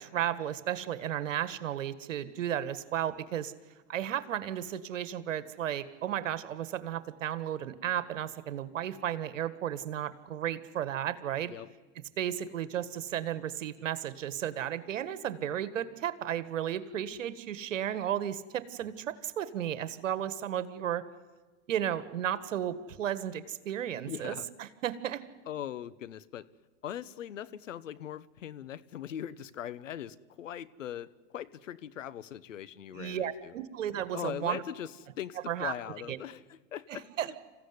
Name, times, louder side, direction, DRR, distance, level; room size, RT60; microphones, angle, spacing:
voice 1, 0.0-3.5 3.9-11.5 12.2-21.0 21.7-25.2 32.9-34.6 35.5-35.7 36.1-36.2 36.9-37.3, right 10 dB, 85° right, 14 dB, 1.6 m, -34 dB
voice 2, 24.1-24.5 25.5-26.5 26.8-33.5 34.1-37.4, left 10 dB, 90° left, 16 dB, 1.1 m, -40 dB
27.5 x 15.5 x 9.6 m, 1.3 s
hypercardioid pair, 105°, 37 cm